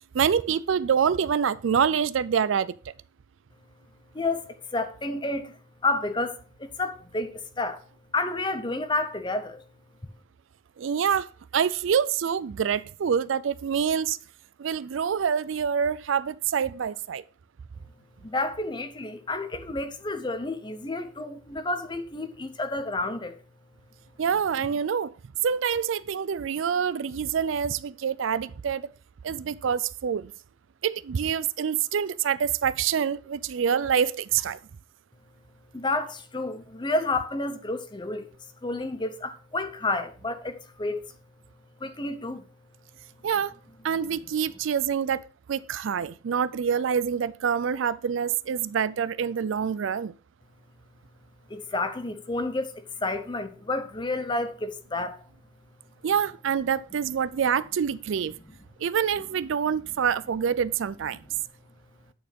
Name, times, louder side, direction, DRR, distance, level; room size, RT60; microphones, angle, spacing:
voice 1, 0.1-2.7 10.8-14.2 14.6-17.2 24.2-25.1 25.4-28.9 29.2-30.3 30.8-34.6 43.2-43.5 43.8-45.2 45.5-50.1 56.0-58.4 58.8-61.2, right 7 dB, 70° right, 0.4 m, -26 dB
voice 2, 4.1-7.8 8.1-9.6 18.2-23.4 35.7-38.3 38.6-41.0 41.8-42.4 51.5-55.2, left 2 dB, 25° left, 0.8 m, -30 dB
9.2 x 4.4 x 5.2 m
head